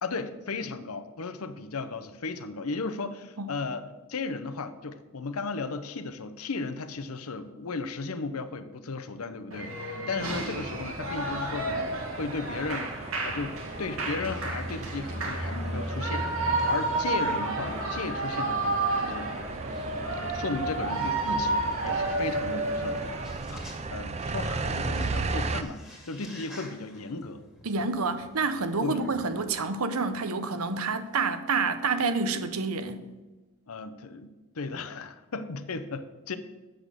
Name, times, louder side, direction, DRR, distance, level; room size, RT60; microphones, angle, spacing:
voice 1, 0.0-19.3 20.3-23.0 23.5-27.4 28.8-29.0 33.7-36.4, left 3 dB, 85° left, 0.7 m, -35 dB
Shout / Cheering, 9.5-23.4, right 2 dB, 70° right, 1.6 m, -31 dB
sound 1, 10.2-25.6, right 3 dB, 30° right, 0.5 m, -37 dB
sound 2, 14.0-18.0 18.7-18.8 19.7-19.9 21.9-22.0 23.0-23.1 23.2-24.0 24.5-29.5, equal, ahead, 1.8 m, -41 dB
voice 2, 27.6-33.1, right 4 dB, 90° right, 0.8 m, -28 dB
7.9 x 6.2 x 6.7 m
head